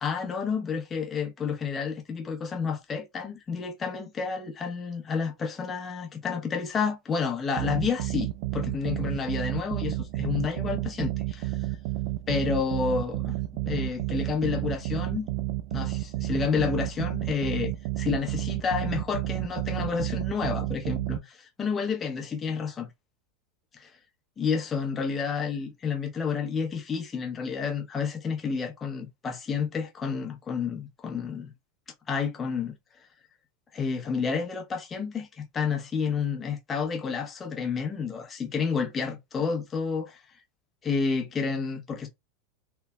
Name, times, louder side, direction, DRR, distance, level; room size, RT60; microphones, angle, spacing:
voice 1, 0.0-11.6 12.3-13.3 13.7-15.3 15.7-22.9 23.8-23.9 24.4-31.5 32.1-32.7 33.7-40.2 40.8-42.1, left 5 dB, 25° left, 0.8 m, -30 dB
sound 1, 7.6-21.2, right 16 dB, 60° right, 0.3 m, -31 dB
3.1 x 2.0 x 2.3 m
hypercardioid pair, 90°, 0 cm